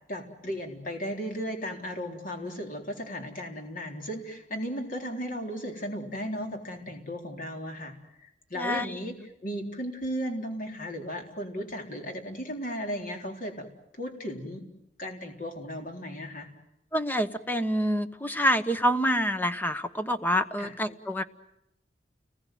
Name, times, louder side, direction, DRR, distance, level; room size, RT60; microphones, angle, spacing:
voice 1, 0.1-13.7 13.9-14.7 15.0-16.5 20.6-20.7, equal, 50° left, 3 dB, 4.0 m, -36 dB
voice 2, 8.6-9.0 16.9-21.2, equal, 10° left, 10 dB, 1.1 m, -27 dB
30.0 x 20.5 x 9.3 m, 0.83 s
head